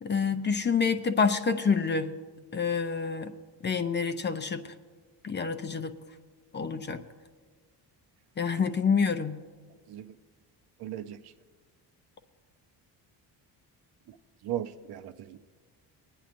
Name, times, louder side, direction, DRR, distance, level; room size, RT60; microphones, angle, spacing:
voice 1, 0.0-2.1 2.5-3.3 3.6-4.6 5.2-5.9 6.5-7.0 8.4-9.4, left 5 dB, 25° left, 0.5 m, -27 dB
voice 2, 10.8-11.2 14.4-15.4, right 11 dB, 65° right, 0.6 m, -37 dB
25.5 x 9.3 x 2.6 m
cardioid pair, 105°, 40 cm